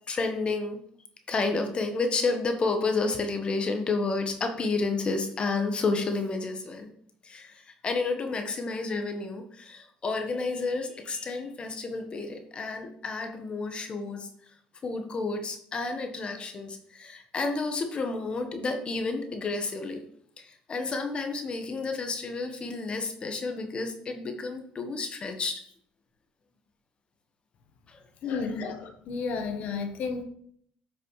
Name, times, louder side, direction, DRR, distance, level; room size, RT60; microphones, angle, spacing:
voice 1, 0.1-0.8 1.3-6.9 7.2-14.3 14.8-20.0 20.4-25.6 27.9-28.3, left 3 dB, 35° left, 5 dB, 1.2 m, -31 dB
voice 2, 28.2-30.2, left 5 dB, 60° left, 5 dB, 1.2 m, -32 dB
10.0 x 5.9 x 3.2 m, 0.65 s
supercardioid pair, 90°, 3 cm